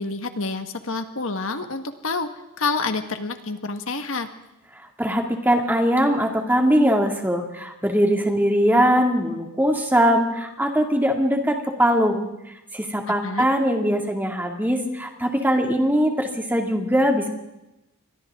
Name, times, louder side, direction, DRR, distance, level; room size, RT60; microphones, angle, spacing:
voice 1, 0.0-2.3 2.6-4.3 13.2-13.5, left 3 dB, 60° left, 7 dB, 1.5 m, -28 dB
voice 2, 5.0-12.3 12.7-17.3, equal, 10° right, 2 dB, 2.3 m, -21 dB
29.5 x 24.0 x 3.7 m, 0.94 s
head